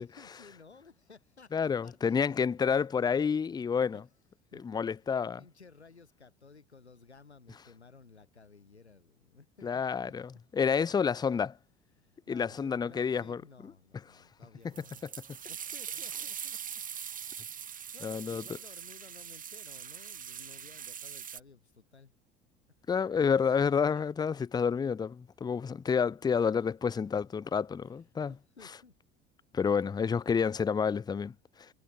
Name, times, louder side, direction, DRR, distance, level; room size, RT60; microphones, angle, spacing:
voice 1, 0.0-2.4 3.8-4.1 4.5-10.1 11.9-16.8 17.3-22.2 22.7-22.8 23.9-24.5 27.8-28.0 28.3-29.0, left 4 dB, 90° left, 5.6 m, -57 dB
voice 2, 1.5-4.0 4.5-5.4 9.6-11.6 12.3-13.4 18.0-18.4 22.9-28.3 29.5-31.7, left 6 dB, 15° left, 0.5 m, -29 dB
sound 1, 14.8-21.4, right 8 dB, 25° right, 0.9 m, -42 dB
figure-of-eight pair, 70°, 32 cm